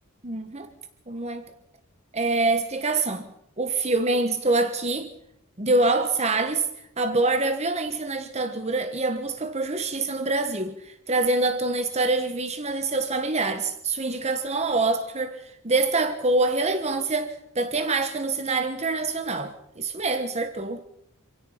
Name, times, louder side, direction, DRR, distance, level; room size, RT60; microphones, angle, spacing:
voice 1, 0.2-0.7 1.1-1.5 2.1-3.3 3.6-5.1 5.6-6.7 7.0-20.8, right 3 dB, 30° right, 1.4 m, -25 dB
27.0 x 17.0 x 5.8 m
head